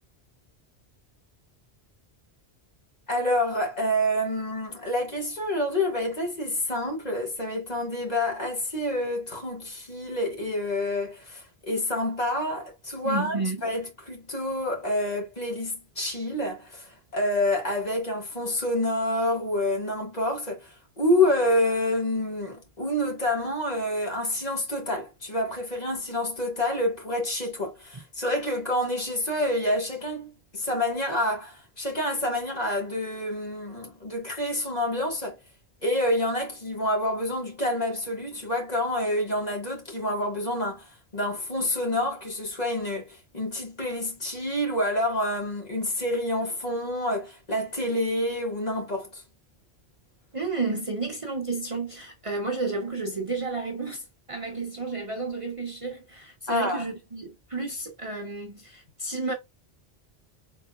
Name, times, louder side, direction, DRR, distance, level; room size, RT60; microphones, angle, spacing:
voice 1, 3.1-35.4 35.8-49.2 56.5-56.9, left 1 dB, 40° left, 1.7 m, -28 dB
voice 2, 13.0-13.6 27.9-28.0 50.3-59.3, right 3 dB, 35° right, 0.8 m, -31 dB
4.1 x 3.7 x 2.3 m
omnidirectional pair, 1.1 m